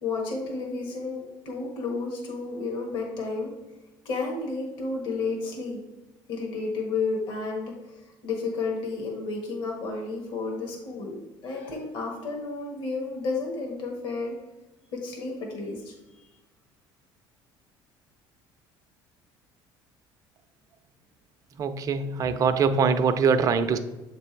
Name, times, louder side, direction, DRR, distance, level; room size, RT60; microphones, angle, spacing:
voice 1, 0.0-3.5 4.0-5.8 6.3-14.3 14.9-16.3, left 3 dB, 65° left, 0 dB, 1.5 m, -32 dB
voice 2, 21.6-23.8, right 5 dB, 40° right, 10 dB, 0.5 m, -23 dB
7.2 x 3.4 x 4.4 m, 1.1 s
cardioid pair, 125°, 9 cm